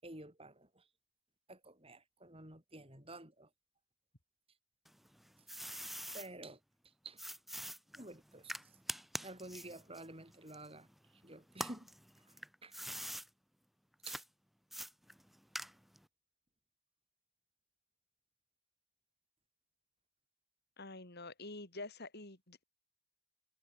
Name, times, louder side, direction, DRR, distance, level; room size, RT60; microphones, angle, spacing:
voice 1, 0.0-0.8 1.5-3.5 5.8-5.9 6.1-6.6 7.0-7.2 7.9-8.6 9.2-10.9 11.2-11.9 12.6-12.7 14.1-14.2, right 2 dB, 25° right, 7.3 m, -51 dB
sound 1, 4.8-6.3 7.2-11.1 11.5-13.3 14.0-14.2 14.7-16.0, equal, ahead, 1.4 m, -45 dB
voice 2, 20.8-22.6, left 2 dB, 45° left, 3.5 m, -47 dB
head